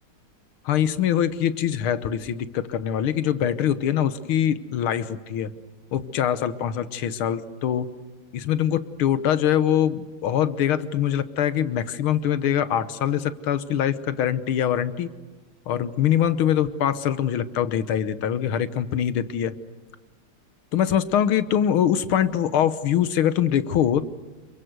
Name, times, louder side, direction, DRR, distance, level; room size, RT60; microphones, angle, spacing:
voice 1, 0.7-5.5 5.9-7.9 8.3-15.1 15.7-19.6 20.7-24.1, left 10 dB, 85° left, 13 dB, 1.9 m, -23 dB
27.5 x 23.0 x 8.0 m, 1.2 s
omnidirectional pair, 2.3 m